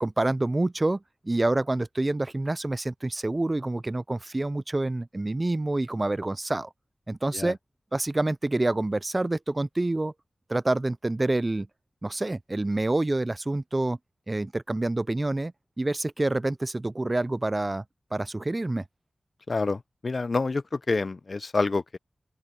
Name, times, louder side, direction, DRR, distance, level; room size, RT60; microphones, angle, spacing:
voice 1, 0.0-6.7 7.1-7.6 7.9-10.1 10.5-11.7 12.0-14.0 14.3-15.5 15.8-17.8 18.1-18.8, right 2 dB, 30° right, 0.4 m, -27 dB
voice 2, 19.5-22.0, left 3 dB, 50° left, 0.5 m, -28 dB
open air
wide cardioid pair, 90°, 0 cm